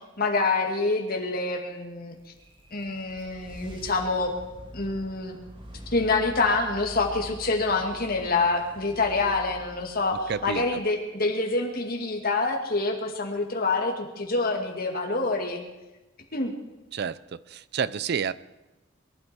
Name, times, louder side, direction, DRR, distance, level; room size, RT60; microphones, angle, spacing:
voice 1, 0.2-2.2 2.7-4.3 4.7-5.4 5.9-15.6 16.3-16.5, left 3 dB, 45° left, 2 dB, 2.4 m, -26 dB
sound 1, 2.2-11.2, equal, 25° right, 1.9 m, -46 dB
voice 2, 10.3-10.6 16.9-18.3, right 6 dB, 55° right, 18 dB, 0.4 m, -30 dB
23.0 x 12.5 x 4.5 m, 1.0 s
head